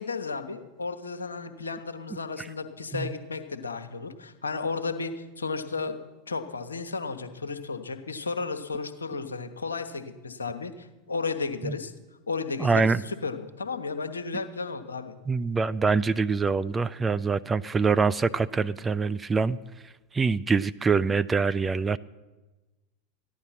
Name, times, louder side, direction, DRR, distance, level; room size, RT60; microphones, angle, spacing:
voice 1, 0.0-6.0 6.3-11.9 12.3-15.1, left 4 dB, 85° left, 7 dB, 1.1 m, -33 dB
voice 2, 12.6-13.0 15.3-19.6 20.1-22.0, right 4 dB, 20° right, 15 dB, 0.5 m, -24 dB
14.5 x 10.5 x 5.8 m, 1.1 s
hypercardioid pair, 85°, 0 cm